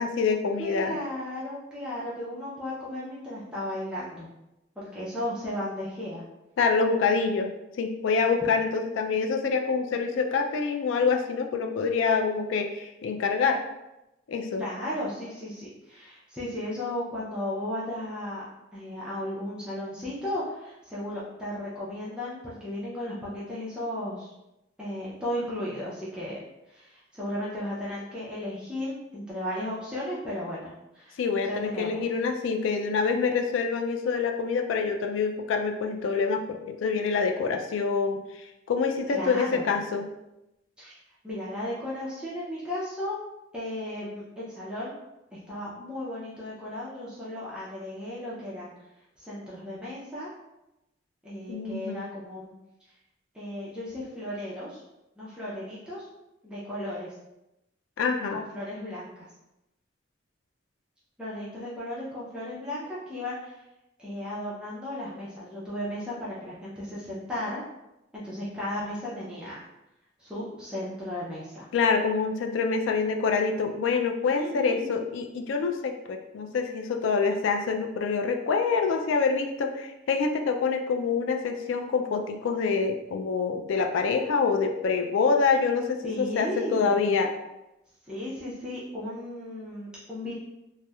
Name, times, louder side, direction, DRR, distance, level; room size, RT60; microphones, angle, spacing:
voice 1, 0.0-1.0 6.6-13.6 14.3-14.6 31.2-40.1 51.5-52.1 58.0-58.4 71.7-87.3, left 5 dB, 85° left, 5 dB, 0.3 m, -26 dB
voice 2, 0.6-4.3 4.8-6.2 14.6-18.4 18.7-24.3 24.8-26.4 26.7-31.1 31.4-32.1 39.1-39.6 40.8-41.0 41.2-43.2 43.5-45.0 45.3-48.7 49.2-50.3 51.2-52.5 53.3-54.8 55.2-56.0 56.4-57.1 58.3-59.1 61.2-63.6 64.0-67.6 68.1-69.6 70.2-71.7 74.4-74.9 86.0-87.0 88.1-90.3, left 1 dB, 5° right, -9 dB, 0.4 m, -35 dB
2.8 x 2.0 x 2.3 m, 0.91 s
head